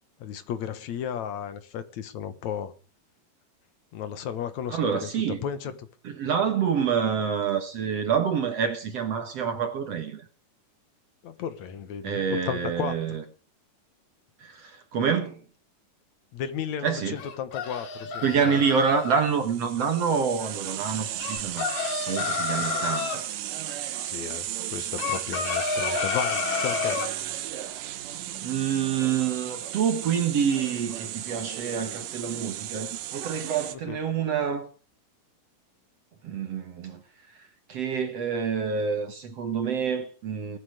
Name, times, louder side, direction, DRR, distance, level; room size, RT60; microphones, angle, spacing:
voice 1, 0.2-2.7 3.9-5.1 5.4-5.9 11.2-13.0 16.3-18.6 22.6-22.7 24.0-27.0 33.9-34.0, left 8 dB, 65° left, 2.5 m, -34 dB
voice 2, 4.7-5.4 6.0-10.2 12.0-13.2 14.4-15.4 16.8-17.2 18.2-21.7 22.1-23.2 28.4-34.7 36.2-37.0 37.7-40.6, right 6 dB, 55° right, 2.3 m, -27 dB
sound 1, 17.2-19.2 21.2-23.2 25.0-27.1, left 6 dB, 90° left, 4.1 m, -30 dB
sound 2, 19.0-33.8, right 12 dB, 85° right, 2.7 m, -35 dB
19.0 x 8.3 x 6.6 m
omnidirectional pair, 3.7 m